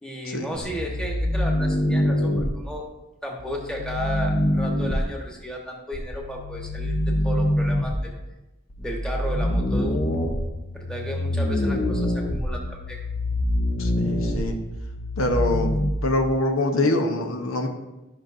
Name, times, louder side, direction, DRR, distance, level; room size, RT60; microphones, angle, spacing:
voice 1, 0.0-2.8 3.2-8.1 8.8-10.0 10.7-13.0, equal, 5° left, -1 dB, 1.3 m, -34 dB
sound 1, 0.5-2.5 3.4-5.0 5.9-8.0 8.7-15.9, left 1 dB, 40° left, 0.8 m, -25 dB
voice 2, 13.8-14.6 15.2-15.7 16.0-17.7, left 1 dB, 85° left, 4 dB, 1.0 m, -24 dB
12.5 x 5.9 x 2.6 m, 1.0 s
head